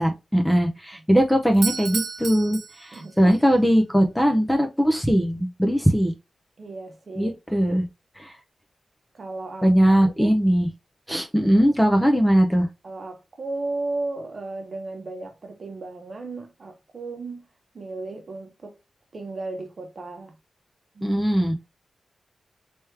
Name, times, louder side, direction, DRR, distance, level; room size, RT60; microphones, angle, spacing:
voice 1, 0.0-6.1 7.2-7.8 8.2-8.3 9.6-10.7 11.1-12.7 21.0-21.5, equal, 5° left, 0.6 m, -20 dB
Doorbell, 1.5-3.4, right 5 dB, 85° right, 0.5 m, -32 dB
voice 2, 6.6-7.4 9.1-9.7 10.0-10.4 11.4-11.7 12.8-17.5 17.7-18.8 19.1-20.3 20.9-21.2, right 2 dB, 45° right, 0.9 m, -35 dB
3.4 x 3.1 x 3.2 m
wide cardioid pair, 155°, 0 cm